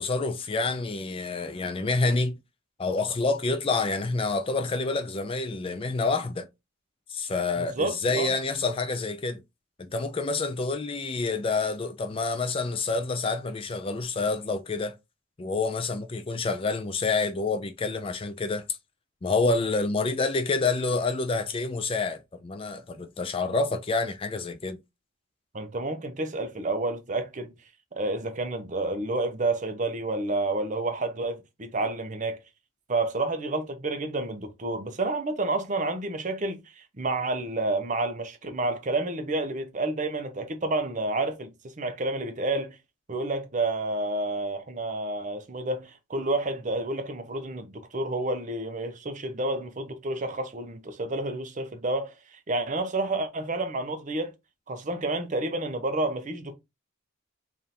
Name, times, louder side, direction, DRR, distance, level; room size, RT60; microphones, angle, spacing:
voice 1, 0.0-2.4 2.8-6.5 7.1-9.4 9.8-14.9 15.4-18.6 19.2-24.8, left 3 dB, 25° left, 0.4 m, -28 dB
voice 2, 7.6-8.3 25.5-27.5 28.0-32.4 32.9-42.8 43.1-54.3 54.7-56.5, right 2 dB, 40° right, 0.7 m, -30 dB
3.5 x 2.5 x 4.2 m
head